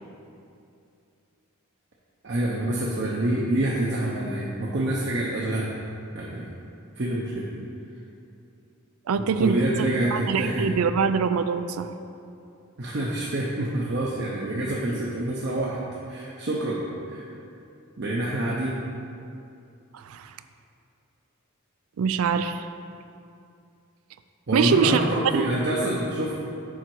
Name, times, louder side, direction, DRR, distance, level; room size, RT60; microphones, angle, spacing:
voice 1, 2.2-5.7 6.1-6.5 7.0-7.5 9.2-10.7 12.8-15.8 16.1-16.8 17.1-17.3 18.0-18.9 24.5-26.4, right 1 dB, 50° right, -4 dB, 0.7 m, -26 dB
voice 2, 9.1-11.9 19.9-20.3 22.0-22.7 24.5-25.0 25.3-25.5, right 6 dB, 75° right, 11 dB, 0.3 m, -24 dB
7.3 x 5.0 x 4.6 m, 2.6 s
head